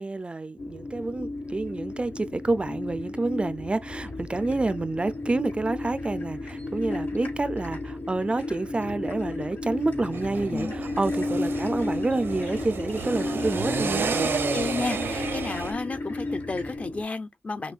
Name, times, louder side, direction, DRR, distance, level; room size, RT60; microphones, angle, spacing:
voice 1, 0.0-14.2, right 2 dB, 30° right, 0.4 m, -28 dB
sound 1, 0.6-17.0, left 2 dB, 55° left, 1.3 m, -33 dB
sound 2, 1.4-16.8, left 3 dB, 75° left, 3.3 m, -51 dB
sound 3, 10.1-15.7, right 5 dB, 85° right, 0.8 m, -31 dB
voice 2, 14.1-17.7, left 3 dB, 40° left, 0.6 m, -32 dB
6.0 x 2.2 x 2.4 m
cardioid pair, 70°, 4 cm